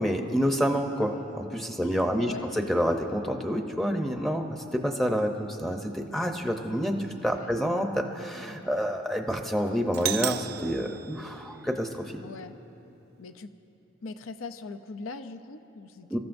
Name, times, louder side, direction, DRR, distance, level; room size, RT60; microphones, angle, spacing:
voice 1, 0.0-12.1 16.1-16.2, equal, ahead, 3 dB, 0.7 m, -28 dB
voice 2, 1.8-2.6 7.3-7.6 12.2-12.6 13.2-13.5 14.0-16.2, left 4 dB, 75° left, 10 dB, 0.6 m, -41 dB
Doorbell, 9.9-11.9, right 11 dB, 50° right, 0.4 m, -34 dB
25.5 x 14.5 x 2.6 m, 2.9 s
head